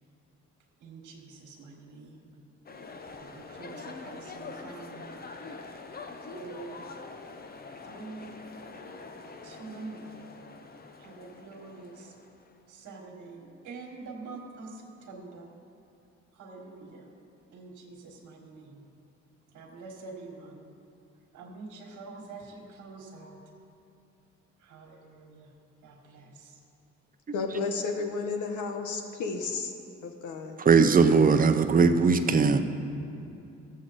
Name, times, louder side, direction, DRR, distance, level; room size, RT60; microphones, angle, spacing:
voice 1, 0.8-2.4 3.2-5.2 6.3-6.9 7.8-8.4 9.4-10.4 11.0-12.1 12.7-15.5 16.3-17.1 17.5-18.8 19.5-20.7 21.3-23.4 24.6-25.5 25.8-26.6, right 3 dB, 75° right, -1 dB, 1.5 m, -45 dB
sound 1, 2.7-12.5, left 4 dB, 30° left, 0.8 m, -45 dB
voice 2, 27.3-29.7 30.0-30.6, left 4 dB, 75° left, 5 dB, 1.1 m, -32 dB
voice 3, 30.6-32.6, right 5 dB, 30° right, 8 dB, 0.6 m, -20 dB
14.5 x 7.5 x 4.1 m, 2.6 s
cardioid pair, 90°, 30 cm